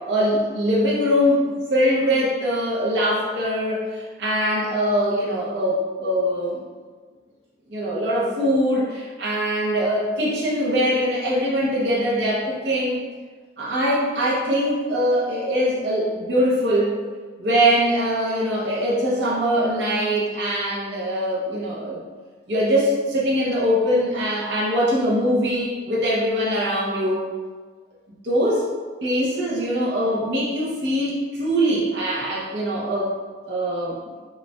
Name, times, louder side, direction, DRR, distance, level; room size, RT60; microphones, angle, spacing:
voice 1, 0.0-6.6 7.7-13.0 13.6-16.9 17.4-22.0 22.5-27.2 28.2-28.7 29.0-33.1 33.5-34.0, equal, 65° right, -6 dB, 0.7 m, -22 dB
5.0 x 2.3 x 2.2 m, 1.5 s
head